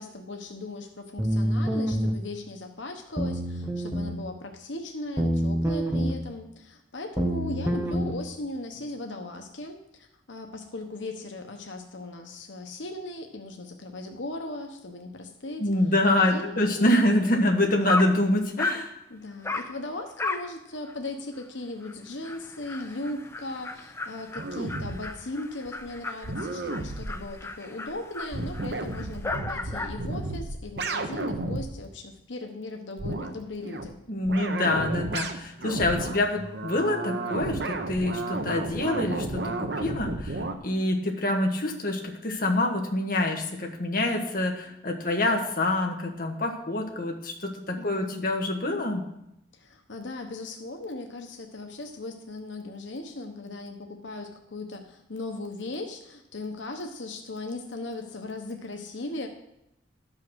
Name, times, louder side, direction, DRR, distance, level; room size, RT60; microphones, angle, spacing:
voice 1, 0.0-15.6 16.3-16.9 19.1-34.0 47.8-48.3 49.5-59.3, left 2 dB, 90° left, 4 dB, 1.1 m, -38 dB
sound 1, 1.2-2.2 3.2-4.2 5.2-6.2 7.2-8.1, equal, 15° right, 0.9 m, -26 dB
voice 2, 15.6-18.9 34.1-49.0, left 1 dB, 50° left, 2 dB, 1.5 m, -26 dB
Dog, 17.9-18.2 18.6-18.9 19.4-19.7 20.2-20.5 20.9-21.0 21.4-21.5 21.8-21.9 22.2-30.0, left 2 dB, 15° left, 0.6 m, -35 dB
sound 2, 24.4-25.0 25.8-25.9 26.2-27.3 27.9-28.0 28.2-31.7 33.0-33.3 33.6-33.9 34.3-40.5, right 2 dB, 65° right, 0.9 m, -33 dB
12.5 x 5.7 x 6.3 m, 0.84 s
head